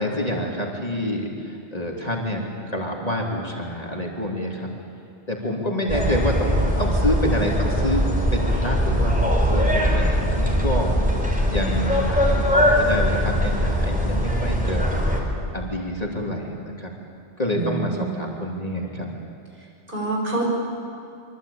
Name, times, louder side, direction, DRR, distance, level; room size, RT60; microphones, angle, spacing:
voice 1, 0.0-2.4 2.7-4.7 5.3-8.0 8.3-10.9 11.4-14.9 15.5-16.9 17.4-19.1, equal, 35° left, -1 dB, 3.1 m, -27 dB
sound 1, 5.9-15.2, equal, 5° right, 4.1 m, -21 dB
voice 2, 17.5-18.3 19.9-20.5, right 2 dB, 50° right, -2 dB, 6.5 m, -27 dB
25.5 x 24.0 x 8.6 m, 2.5 s
omnidirectional pair, 1.2 m